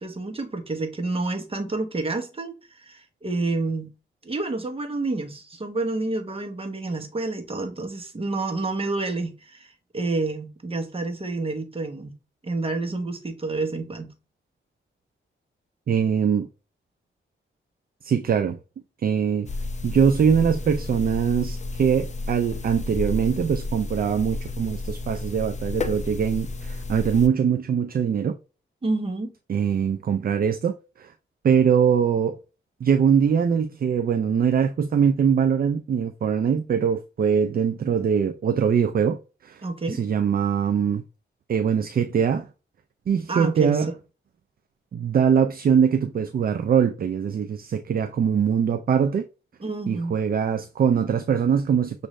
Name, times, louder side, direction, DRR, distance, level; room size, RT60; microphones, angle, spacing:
voice 1, 0.0-3.9 4.2-12.1 12.4-14.1 28.8-29.3 39.6-40.0 43.3-43.8 49.6-50.1, right 3 dB, 30° right, 1.1 m, -29 dB
voice 2, 15.9-16.5 18.0-18.6 19.0-19.5 19.8-28.4 29.5-31.1 31.4-32.3 32.8-41.0 41.5-42.5 43.1-43.9 44.9-49.3 49.9-52.1, right 7 dB, 45° right, 0.4 m, -22 dB
sound 1, 19.5-27.3, left 2 dB, 35° left, 0.6 m, -32 dB
6.2 x 2.6 x 3.1 m
cardioid pair, 95°, 21 cm